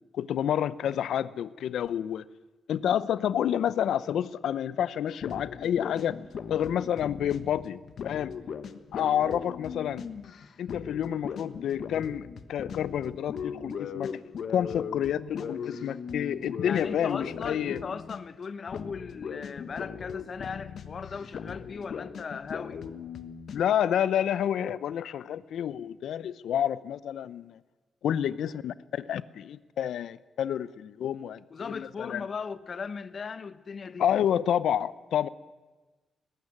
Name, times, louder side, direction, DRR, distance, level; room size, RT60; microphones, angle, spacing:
voice 1, 0.1-2.2 2.7-6.2 6.5-7.8 8.0-8.3 8.9-10.0 10.6-14.2 14.5-17.8 23.5-27.6 28.0-32.2 34.0-35.3, left 9 dB, 80° left, 0.7 m, -29 dB
sound 1, 5.1-18.4 18.7-23.6, left 6 dB, 60° left, 1.2 m, -39 dB
voice 2, 16.6-22.8 31.5-34.1, left 5 dB, 40° left, 0.9 m, -38 dB
19.0 x 15.0 x 9.8 m
wide cardioid pair, 145°, 0 cm